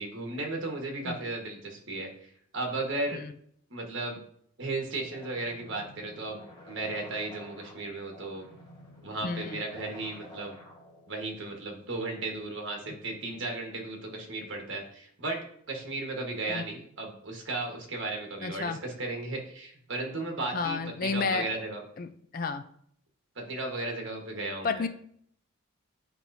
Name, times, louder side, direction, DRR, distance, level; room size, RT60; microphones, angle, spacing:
voice 1, 0.0-3.2 3.7-4.2 4.6-8.5 9.0-10.6 11.1-15.4 15.7-21.8 23.3-24.9, right 2 dB, 60° right, 1 dB, 1.4 m, -35 dB
sound 1, 5.1-11.1, left 1 dB, 20° left, 1.4 m, -50 dB
voice 2, 9.2-9.6 16.5-16.6 18.4-18.8 20.5-21.5 22.0-22.6 24.6-24.9, left 4 dB, 40° left, 9 dB, 0.4 m, -31 dB
8.6 x 4.4 x 2.7 m, 0.65 s
head